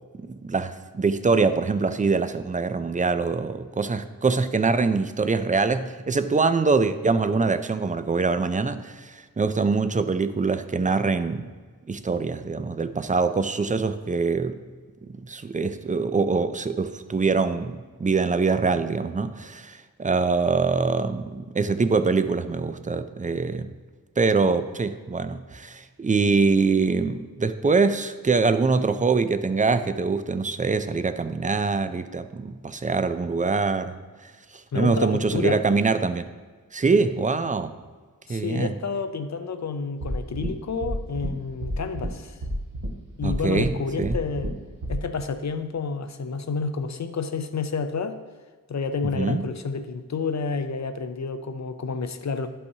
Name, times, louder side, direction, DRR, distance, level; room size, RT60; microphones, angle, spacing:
voice 1, 0.1-11.5 11.9-14.6 15.2-23.7 24.2-33.9 34.7-36.3 36.7-37.7 38.3-38.7 43.2-44.2 49.1-49.4, right 4 dB, 20° right, 11 dB, 0.4 m, -24 dB
voice 2, 34.7-35.6 38.3-42.4 43.2-44.5 44.9-48.2 48.7-52.5, left 5 dB, 50° left, 9 dB, 0.6 m, -29 dB
sound 1, 40.0-40.5 40.8-41.3 41.6-42.1 42.4-42.9 43.2-43.7 44.0-44.5 44.8-44.9, right 1 dB, 60° right, 1.3 m, -31 dB
11.5 x 5.5 x 2.8 m, 1.5 s
wide cardioid pair, 80°, 36 cm